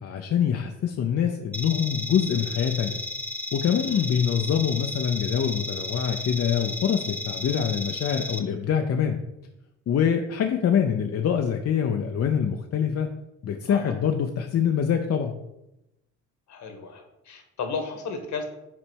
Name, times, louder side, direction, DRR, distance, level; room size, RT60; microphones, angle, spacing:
voice 1, 0.0-3.0 3.5-9.2 9.9-13.1 13.4-15.3, left 8 dB, 55° left, 4 dB, 0.7 m, -25 dB
sound 1, 1.5-8.4, left 2 dB, 5° left, 0.8 m, -34 dB
voice 2, 3.8-4.1 13.7-14.0 16.5-18.5, left 4 dB, 70° left, 5 dB, 1.7 m, -34 dB
6.0 x 4.3 x 6.3 m, 0.89 s
cardioid pair, 90°, 30 cm